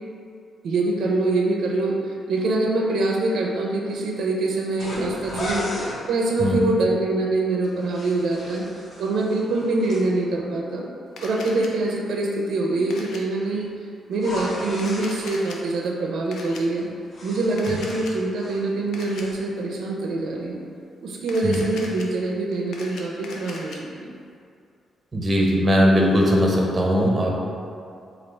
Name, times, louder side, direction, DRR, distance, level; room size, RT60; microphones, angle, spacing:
voice 1, 0.6-5.7 6.1-8.6 9.0-10.9 11.2-13.7 14.1-16.9 17.2-20.6 21.0-24.1, right 2 dB, 75° right, -1 dB, 0.4 m, -24 dB
sound 1, 4.8-6.0 7.6-10.0 14.1-15.3 16.8-18.7 19.0-19.4, left 1 dB, 50° left, 0.8 m, -35 dB
Camera, 11.2-11.7 12.9-13.2 14.7-15.6 16.3-16.6 17.6-18.1 18.9-19.2 21.2-22.0 22.5-23.8, left 3 dB, 85° left, 0.4 m, -39 dB
voice 2, 25.1-27.4, equal, 25° right, -1 dB, 0.5 m, -19 dB
3.3 x 2.3 x 4.3 m, 2.4 s
cardioid pair, 125°, 0 cm